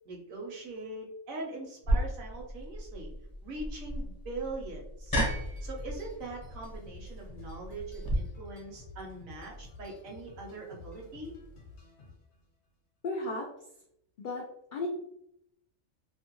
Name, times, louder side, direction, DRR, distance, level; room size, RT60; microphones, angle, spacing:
voice 1, 0.0-3.1 3.4-5.2 5.6-11.3, right 2 dB, 75° right, -1 dB, 1.3 m, -42 dB
sound 1, 1.8-8.2, right 1 dB, 20° left, 0.6 m, -34 dB
sound 2, 5.1-10.6, left 1 dB, 20° right, 0.6 m, -47 dB
sound 3, 5.3-12.5, left 2 dB, 50° left, 0.9 m, -51 dB
voice 2, 13.0-13.5 14.2-14.5 14.7-14.9, left 2 dB, 80° left, -1 dB, 0.4 m, -33 dB
2.9 x 2.1 x 2.9 m, 0.74 s
omnidirectional pair, 1.4 m